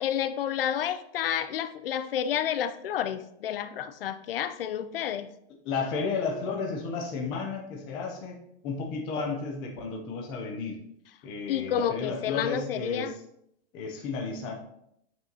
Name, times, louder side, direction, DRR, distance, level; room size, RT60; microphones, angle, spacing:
voice 1, 0.0-5.3 11.5-13.1, left 9 dB, 60° left, 12 dB, 0.6 m, -30 dB
voice 2, 5.6-10.8 11.2-13.1 13.7-14.5, left 4 dB, 15° left, 1 dB, 0.5 m, -33 dB
9.0 x 6.1 x 2.8 m, 0.75 s
supercardioid pair, 175°, 33 cm